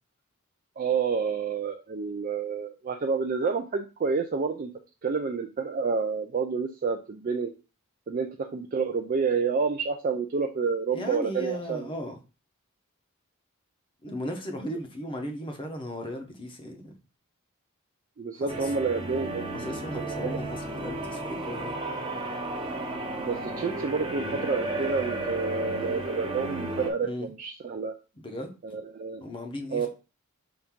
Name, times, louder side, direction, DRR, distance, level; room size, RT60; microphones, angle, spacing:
voice 1, 0.8-4.7 5.0-7.5 8.1-11.9 18.2-19.4 20.0-20.3 23.2-27.9 28.7-29.2 29.7-29.9, right 5 dB, 40° right, 5 dB, 0.4 m, -29 dB
voice 2, 10.9-12.2 14.0-16.9 18.3-18.7 19.5-21.8 27.0-27.3 28.1-28.5 29.2-29.9, left 1 dB, 25° left, 4 dB, 0.7 m, -36 dB
sound 1, 18.5-26.9, right 2 dB, 20° right, 0.7 m, -33 dB
5.8 x 2.6 x 3.6 m, 0.32 s
head